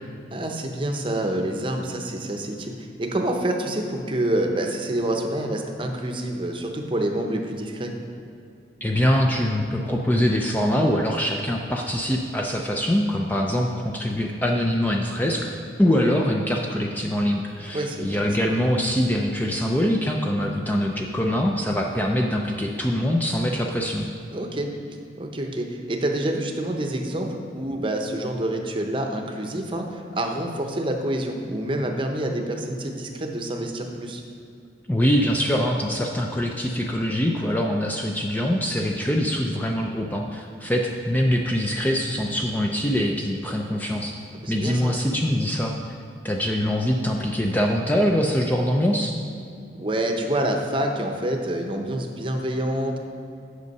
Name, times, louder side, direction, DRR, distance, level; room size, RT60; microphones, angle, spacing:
voice 1, 0.3-7.9 17.7-18.1 24.3-24.7 25.2-34.2 44.4-44.9 49.8-53.0, right 1 dB, 30° right, 3 dB, 0.8 m, -27 dB
voice 2, 8.8-24.1 34.9-44.1 44.5-45.7 46.2-49.1, equal, 10° left, 0 dB, 0.4 m, -23 dB
8.2 x 6.5 x 5.3 m, 2.5 s
head